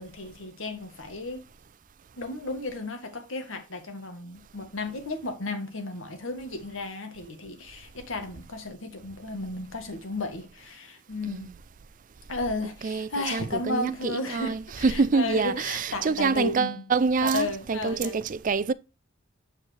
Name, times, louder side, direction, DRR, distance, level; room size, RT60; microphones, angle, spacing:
voice 1, 0.0-1.4 2.2-11.5 12.3-16.9 17.2-18.2, left 2 dB, 80° left, 1.7 m, -34 dB
voice 2, 13.3-13.8 14.3-14.6 15.0-15.5 16.1-17.4 17.7-18.7, right 4 dB, 40° right, 0.4 m, -25 dB
8.5 x 4.5 x 3.3 m
head